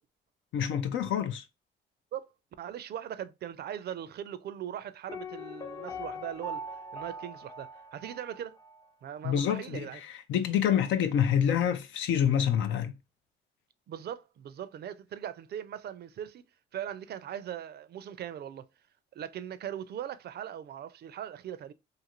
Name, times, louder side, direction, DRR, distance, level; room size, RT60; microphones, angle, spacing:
voice 1, 0.5-1.4 9.2-13.0, left 9 dB, 75° left, 0.5 m, -27 dB
voice 2, 2.6-8.6 9.0-10.0 13.9-16.4 16.7-18.7 19.1-21.7, right 10 dB, 55° right, 0.4 m, -40 dB
Piano, 5.1-8.9 9.1-9.2, left 1 dB, 15° left, 0.5 m, -41 dB
2.6 x 2.5 x 2.8 m
cardioid pair, 90°, 20 cm